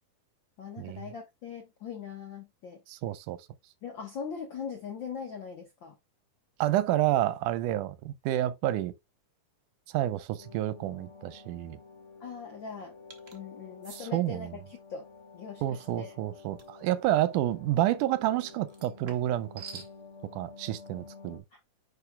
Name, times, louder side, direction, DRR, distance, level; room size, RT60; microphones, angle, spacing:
voice 1, 0.6-2.8 3.8-6.0 12.2-12.9 13.3-15.0 15.3-16.2 21.5-21.6, left 6 dB, 80° left, 1.0 m, -41 dB
voice 2, 2.9-3.4 6.6-8.9 9.9-11.8 14.1-14.5 15.6-19.5 19.7-19.8 20.3-21.4, right 13 dB, 90° right, 2.2 m, -29 dB
sound 1, 10.4-21.4, left 4 dB, 30° left, 1.7 m, -51 dB
sound 2, 13.1-13.4 13.8-14.0 16.6-16.8 18.7-19.9, right 5 dB, 60° right, 0.8 m, -47 dB
10.0 x 4.3 x 2.3 m
omnidirectional pair, 3.6 m